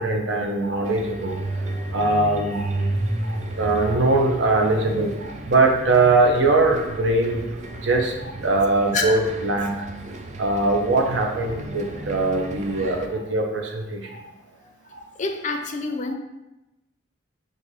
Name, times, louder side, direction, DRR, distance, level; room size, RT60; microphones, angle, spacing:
voice 1, 0.0-1.4 1.9-2.7 3.5-7.5 7.8-9.8 10.4-14.2 14.9-15.0, right 2 dB, 65° right, 2 dB, 0.6 m, -21 dB
sound 1, 0.8-13.1, right 2 dB, 35° right, 0.3 m, -33 dB
voice 2, 15.2-16.1, left 3 dB, 40° left, 5 dB, 0.4 m, -26 dB
4.0 x 2.5 x 4.7 m, 0.98 s
head